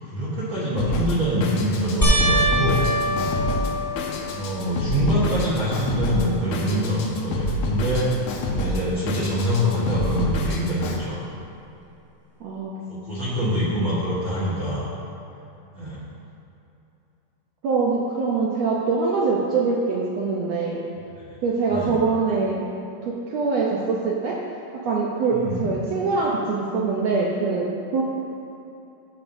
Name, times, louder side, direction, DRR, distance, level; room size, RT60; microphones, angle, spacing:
voice 1, 0.0-2.8 3.1-3.4 4.3-8.1 8.5-11.2 12.9-14.8 15.7-16.0 21.1-21.3 21.7-21.9 25.3-25.7, equal, 50° right, -10 dB, 1.5 m, -25 dB
Drum kit, 0.8-11.0, left 1 dB, 80° left, 1.5 m, -28 dB
sound 1, 2.0-4.6 5.2-5.8 6.1-6.2 9.4-9.5, equal, 10° left, 0.9 m, -24 dB
voice 2, 12.4-13.1 17.6-20.8 21.4-22.6 23.0-24.4 24.7-28.0, right 4 dB, 80° right, -3 dB, 1.5 m, -24 dB
13.5 x 7.1 x 2.6 m, 2.8 s
omnidirectional pair, 3.9 m